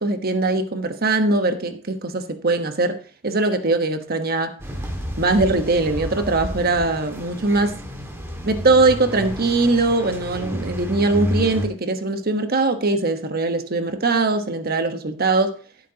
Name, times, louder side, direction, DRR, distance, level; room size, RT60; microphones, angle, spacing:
voice 1, 0.0-4.5 5.2-7.7 8.4-15.5, right 3 dB, 50° right, 1.2 m, -21 dB
sound 1, 4.6-11.7, equal, 15° right, 1.9 m, -30 dB
14.5 x 8.4 x 2.9 m
head